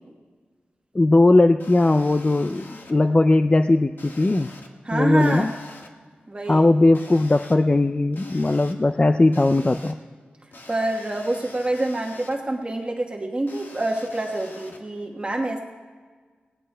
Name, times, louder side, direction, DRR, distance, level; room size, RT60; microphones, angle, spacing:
voice 1, 0.9-4.5 4.9-5.5 6.5-9.9, left 2 dB, 30° left, 9 dB, 0.4 m, -18 dB
sound 1, 1.6-2.9 4.0-4.7 5.2-5.9 6.9-7.5 8.1-8.7 9.3-9.9 10.5-12.4 13.5-14.8, left 2 dB, 65° left, 1.4 m, -45 dB
voice 2, 4.8-5.5 6.3-6.7 10.7-15.6, right 1 dB, 30° right, 0 dB, 1.2 m, -26 dB
20.0 x 17.5 x 2.2 m, 1.5 s
cardioid pair, 60°, 4 cm